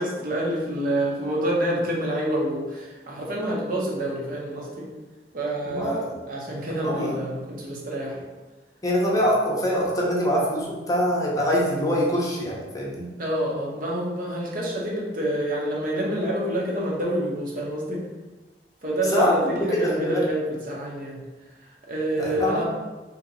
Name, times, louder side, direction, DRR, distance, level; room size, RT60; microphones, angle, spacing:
voice 1, 0.0-4.9 5.3-8.2 13.2-18.0 18.8-21.2 21.6-22.6, right 1 dB, 50° right, -3 dB, 0.8 m, -27 dB
voice 2, 5.7-6.2 6.8-7.2 8.8-13.1 19.1-20.2 22.2-22.6, equal, 20° left, -4 dB, 0.7 m, -24 dB
2.9 x 2.8 x 3.9 m, 1.2 s
head